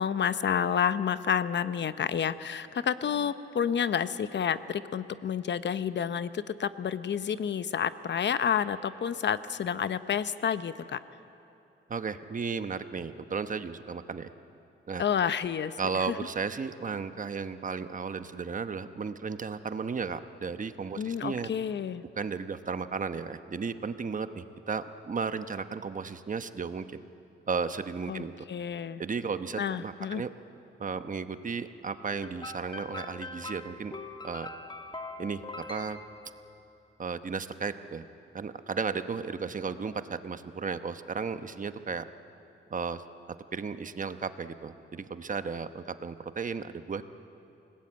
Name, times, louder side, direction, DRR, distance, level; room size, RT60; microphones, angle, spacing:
voice 1, 0.0-11.0 15.0-16.2 21.0-22.0 28.1-29.0 29.6-30.2, left 8 dB, 65° left, 13 dB, 0.8 m, -30 dB
voice 2, 11.9-14.3 14.9-15.0 15.8-21.5 22.2-26.8 27.5-28.3 29.0-30.3 30.8-33.9 34.2-34.5 35.2-36.0 37.0-38.0 38.3-42.0 42.7-43.0 43.5-47.0, right 5 dB, 40° right, 10 dB, 1.0 m, -34 dB
Camptown Races Clockwork Chime, 32.1-36.7, left 2 dB, 20° left, 1.4 m, -43 dB
29.0 x 19.0 x 8.7 m, 2.9 s
wide cardioid pair, 110°, 20 cm